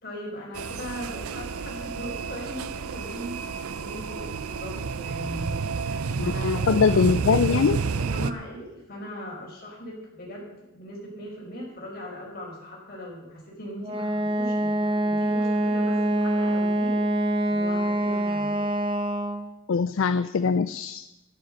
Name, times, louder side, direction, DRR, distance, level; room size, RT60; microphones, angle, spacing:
voice 1, 0.0-18.7, equal, 45° left, -3 dB, 4.8 m, -39 dB
sound 1, 0.6-8.3, right 5 dB, 85° right, 0.6 m, -30 dB
voice 2, 6.2-7.8 19.7-21.0, left 5 dB, 65° left, 13 dB, 0.4 m, -22 dB
Wind instrument woodwind instrument, 13.8-19.5, right 1 dB, 25° right, 0.7 m, -25 dB
11.5 x 10.5 x 6.3 m, 0.94 s
head